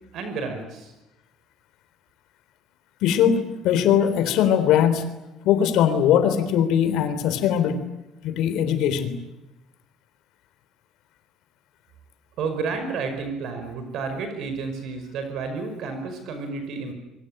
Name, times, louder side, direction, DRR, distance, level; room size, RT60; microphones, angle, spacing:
voice 1, 0.1-0.9 12.4-16.9, right 4 dB, 60° right, 7 dB, 5.5 m, -31 dB
voice 2, 3.0-5.1 5.4-7.8 8.2-9.2, left 9 dB, 75° left, 11 dB, 3.6 m, -20 dB
26.5 x 24.0 x 9.0 m, 0.97 s
cardioid pair, 150°, 0 cm